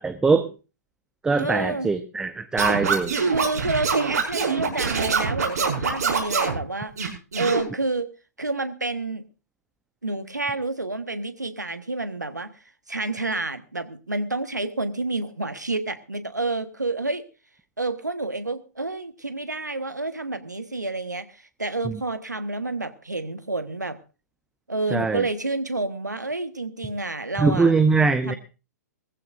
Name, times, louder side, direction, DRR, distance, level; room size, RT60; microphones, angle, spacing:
voice 1, 0.0-0.5 1.2-3.2 21.8-21.9 24.9-25.2 27.4-28.3, right 4 dB, 10° right, 10 dB, 0.8 m, -21 dB
voice 2, 1.4-1.9 3.2-6.9 7.3-8.1 8.4-9.2 10.0-12.5 12.9-17.2 17.8-24.0 24.7-27.7 28.2-28.4, right 2 dB, 85° right, 10 dB, 1.5 m, -29 dB
Scratching (performance technique), 2.6-6.6 7.0-7.6, right 5 dB, 70° right, 5.9 m, -24 dB
19.5 x 15.0 x 2.6 m, 0.32 s
figure-of-eight pair, 115°, 9 cm